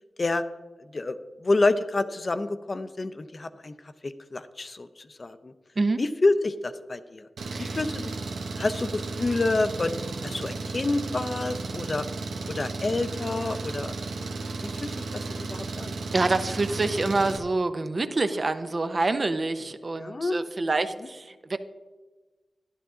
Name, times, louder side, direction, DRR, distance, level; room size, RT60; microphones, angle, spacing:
voice 1, 0.9-3.7 4.0-5.5 6.0-7.3 7.6-8.1 8.6-9.9 10.2-12.1 12.5-14.1 14.8-16.0 20.0-20.4, left 2 dB, 35° left, 11 dB, 0.6 m, -28 dB
Engine, 7.4-17.4, right 3 dB, 85° right, 0.9 m, -34 dB
voice 2, 16.1-21.6, right 3 dB, 40° right, 10 dB, 0.6 m, -26 dB
12.0 x 11.5 x 3.7 m, 1.3 s
wide cardioid pair, 110°, 0 cm